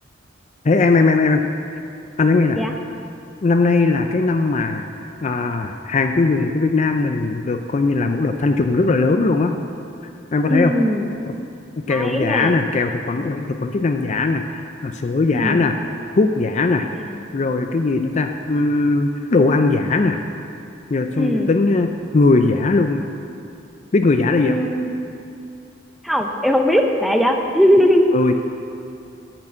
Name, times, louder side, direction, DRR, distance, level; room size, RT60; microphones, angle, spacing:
voice 1, 0.6-1.4 2.2-2.6 3.4-4.9 5.2-9.5 10.3-10.7 11.3-11.4 11.8-15.8 16.2-20.2 20.9-23.0 23.9-24.6 27.7-28.3, left 3 dB, 35° left, 6 dB, 0.4 m, -19 dB
voice 2, 10.5-11.0 11.9-12.6 15.3-15.6 16.9-17.2 21.1-21.5 24.4-24.9 26.0-28.1, equal, ahead, 3 dB, 0.6 m, -19 dB
10.5 x 6.1 x 8.7 m, 2.6 s
head